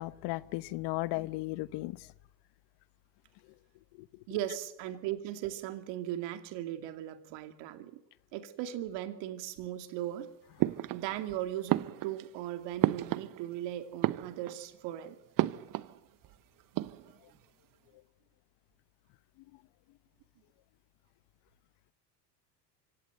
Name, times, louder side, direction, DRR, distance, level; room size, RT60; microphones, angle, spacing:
voice 1, 0.0-2.1 4.0-4.1, left 20 dB, 55° left, 1.0 m, -35 dB
voice 2, 4.3-8.0 8.3-10.3 10.9-15.2, right 12 dB, 60° right, 2.6 m, -38 dB
sound 1, 10.6-11.3 11.7-13.6 13.9-14.8 15.4-16.0 16.2-16.3 16.6-17.3, right 15 dB, 40° right, 1.0 m, -32 dB
24.5 x 17.0 x 7.9 m
hypercardioid pair, 85°, 49 cm